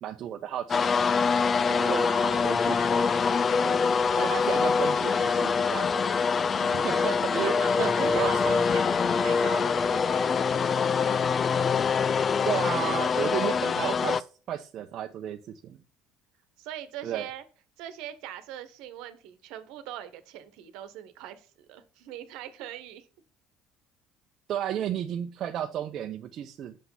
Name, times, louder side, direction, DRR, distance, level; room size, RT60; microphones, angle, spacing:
voice 1, 0.0-1.0 1.8-3.0 3.6-3.9 4.2-6.1 6.8-8.6 12.4-15.8 17.0-17.3 24.5-26.8, right 10 dB, 55° right, 5 dB, 0.7 m, -33 dB
sound 1, 0.7-14.2, left 5 dB, 40° left, 0.5 m, -24 dB
voice 2, 1.6-3.0 6.5-10.6 16.6-17.4 17.8-23.1, right 11 dB, 75° right, 11 dB, 1.2 m, -42 dB
6.7 x 5.9 x 5.6 m, 0.38 s
hypercardioid pair, 70°, 0 cm